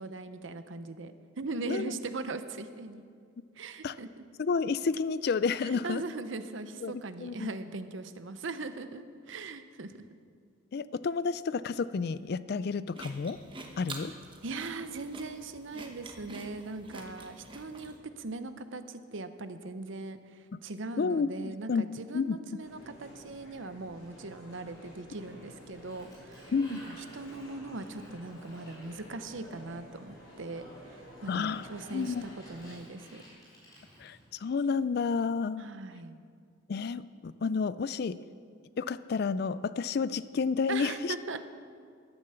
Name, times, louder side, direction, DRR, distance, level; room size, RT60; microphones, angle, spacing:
voice 1, 0.0-3.1 3.6-4.2 5.6-10.1 14.4-33.2 35.6-36.2 40.7-41.5, right 3 dB, 65° right, 11 dB, 0.7 m, -40 dB
voice 2, 4.4-6.0 6.8-7.5 10.7-13.4 13.8-14.1 21.0-21.8 22.1-22.4 26.5-26.8 31.3-32.3 34.0-35.6 36.7-38.2 38.8-41.1, left 5 dB, 50° left, 16 dB, 0.3 m, -30 dB
sound 1, 12.9-18.0, right 2 dB, 25° right, 1.0 m, -47 dB
sound 2, 22.6-32.8, equal, 80° left, 4.3 m, -51 dB
Sliding door, 25.3-29.9 31.1-34.8, equal, 20° left, 3.9 m, -56 dB
12.0 x 9.9 x 6.9 m, 2.1 s
head